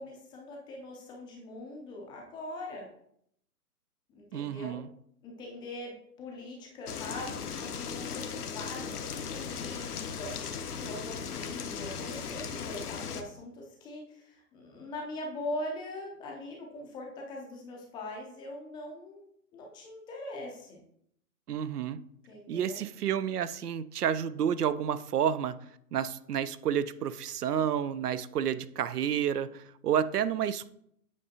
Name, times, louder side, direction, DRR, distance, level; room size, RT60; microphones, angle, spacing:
voice 1, 0.0-2.9 4.1-4.8 5.2-19.3 19.5-20.8 22.3-22.8, left 1 dB, 10° left, 0.5 m, -42 dB
voice 2, 4.3-4.9 21.5-22.0 22.5-25.6 25.9-30.7, right 9 dB, 75° right, 0.6 m, -30 dB
sound 1, 6.9-13.2, left 6 dB, 75° left, 0.9 m, -37 dB
8.3 x 5.0 x 2.8 m
figure-of-eight pair, 125°, 46 cm